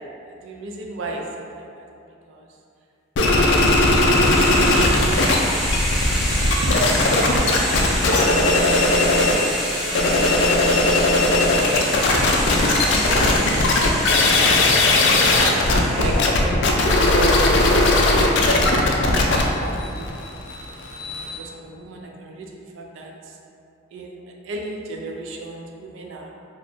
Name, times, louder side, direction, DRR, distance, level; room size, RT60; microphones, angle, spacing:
voice 1, 0.4-1.8 2.3-2.5 3.2-4.2 4.5-5.3 6.4-7.9 15.4-20.3 21.1-23.4 23.9-24.2 24.4-26.3, right 2 dB, 70° right, 0 dB, 0.4 m, -34 dB
sound 1, 3.2-5.4 5.6-9.4 9.8-21.4, left 2 dB, 60° left, 0.3 m, -18 dB
sound 2, 3.4-16.5, equal, ahead, 0.5 m, -28 dB
3.4 x 2.3 x 2.5 m, 2.5 s
head